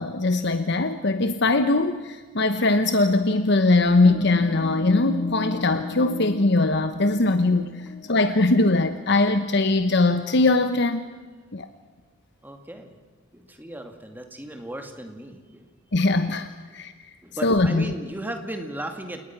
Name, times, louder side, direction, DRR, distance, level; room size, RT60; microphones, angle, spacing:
voice 1, 0.0-7.7 8.1-11.1 11.5-11.7 15.9-16.5 16.7-16.9 17.4-17.9, left 2 dB, 60° left, 9 dB, 1.0 m, -21 dB
sound 1, 4.0-9.0, left 3 dB, 35° left, 0.7 m, -33 dB
voice 2, 12.4-12.9 13.3-15.7 16.7-16.8 17.2-19.2, right 1 dB, 10° right, 5 dB, 2.3 m, -36 dB
29.0 x 19.0 x 6.0 m, 1.4 s
head